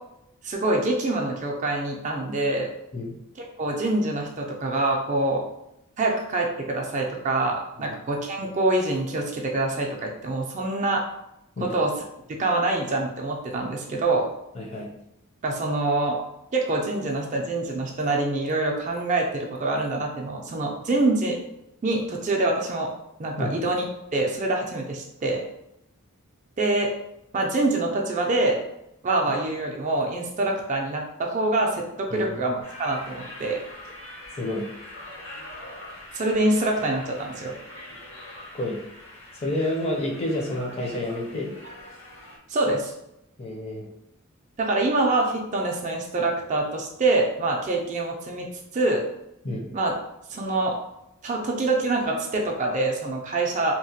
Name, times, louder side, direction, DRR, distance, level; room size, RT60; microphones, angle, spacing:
voice 1, 0.4-2.7 3.6-5.4 6.0-11.0 11.7-11.9 12.4-14.3 15.4-16.2 16.5-21.4 21.8-22.9 23.2-23.8 24.1-25.4 26.6-26.9 27.3-28.6 29.0-33.6 36.1-37.5 42.5-42.9 44.6-48.5 48.7-49.0 49.7-50.0 50.3-50.8 51.2-53.7, right 2 dB, 35° right, 1 dB, 0.3 m, -25 dB
voice 2, 14.5-14.9 23.4-23.6 32.1-32.4 34.4-34.6 38.5-38.8 39.4-41.5 43.4-43.9 49.4-49.7, left 1 dB, 30° left, -1 dB, 0.5 m, -29 dB
sound 1, 32.6-42.4, left 1 dB, 65° left, 0.8 m, -43 dB
2.8 x 2.1 x 2.7 m, 0.84 s
head